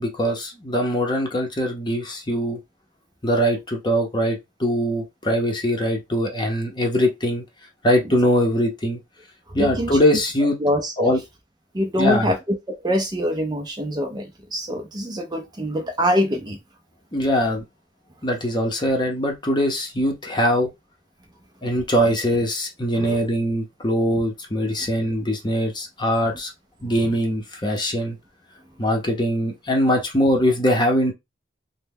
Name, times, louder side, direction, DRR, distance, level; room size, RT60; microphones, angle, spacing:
voice 1, 0.0-2.6 3.2-7.4 7.8-9.0 9.5-10.6 11.0-11.2 12.0-12.3 17.1-17.6 18.2-20.7 21.6-26.5 26.8-28.2 28.8-31.1, equal, 25° left, 0.7 m, -22 dB
voice 2, 9.6-10.2 10.6-11.1 11.7-16.6 23.0-23.2, equal, 20° right, 0.5 m, -24 dB
3.2 x 2.1 x 3.5 m
head